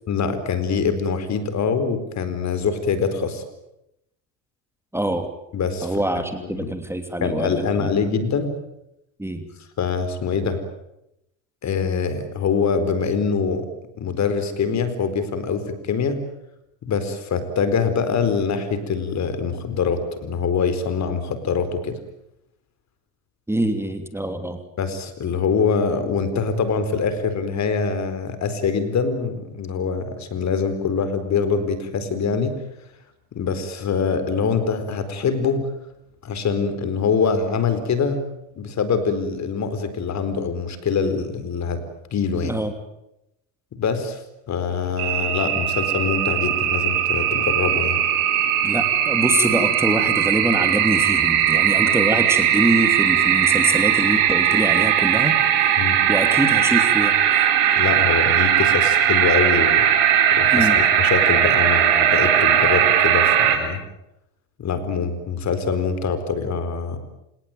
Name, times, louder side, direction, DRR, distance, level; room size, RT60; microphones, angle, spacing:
voice 1, 0.1-3.4 5.5-5.9 6.4-6.7 7.2-8.6 9.8-10.6 11.6-13.7 14.0-16.2 16.9-22.0 24.8-32.6 33.3-35.7 36.2-38.2 38.6-41.8 42.1-42.6 43.7-44.2 44.5-48.0 55.8-56.0 57.8-59.9 60.3-63.8 64.6-67.0, left 5 dB, 45° left, 11 dB, 4.4 m, -24 dB
voice 2, 4.9-5.3 5.8-7.9 9.2-9.5 23.5-24.6 42.4-42.7 48.6-55.5 56.1-57.2 60.5-60.8, right 1 dB, 5° right, 7 dB, 3.0 m, -24 dB
sound 1, 45.0-63.6, right 10 dB, 75° right, 4.6 m, -19 dB
28.5 x 18.5 x 9.3 m, 0.86 s
supercardioid pair, 85°, 38 cm